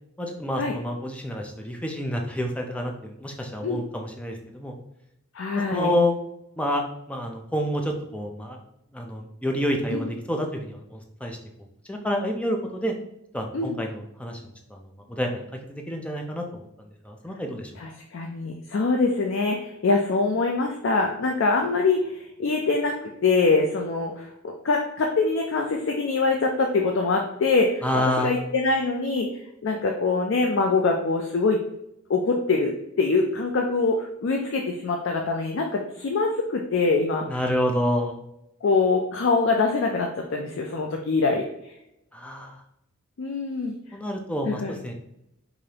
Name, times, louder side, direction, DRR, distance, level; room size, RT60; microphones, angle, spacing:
voice 1, 0.2-4.7 5.7-6.1 6.6-8.6 8.9-11.4 11.9-12.9 13.3-14.4 14.7-14.8 15.1-15.4 15.7-16.7 17.0-17.7 27.8-28.3 37.3-38.2 42.1-42.6 43.9-44.9, equal, 5° left, 2 dB, 0.5 m, -28 dB
voice 2, 5.3-5.9 9.9-10.1 13.5-13.8 17.8-29.3 29.6-31.6 32.1-37.2 38.6-41.7 43.2-43.7 44.5-44.7, left 3 dB, 65° left, 2 dB, 0.4 m, -24 dB
4.8 x 2.6 x 2.8 m, 0.82 s
head